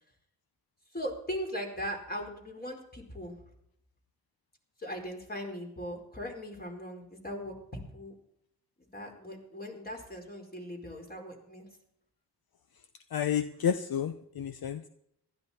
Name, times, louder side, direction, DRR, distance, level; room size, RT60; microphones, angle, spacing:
voice 1, 0.9-3.4 4.8-8.1 8.8-11.7, equal, 25° left, 1 dB, 4.5 m, -39 dB
voice 2, 13.1-14.9, left 8 dB, 65° left, 11 dB, 0.8 m, -30 dB
15.5 x 13.0 x 4.3 m, 0.75 s
cardioid pair, 55°, 40 cm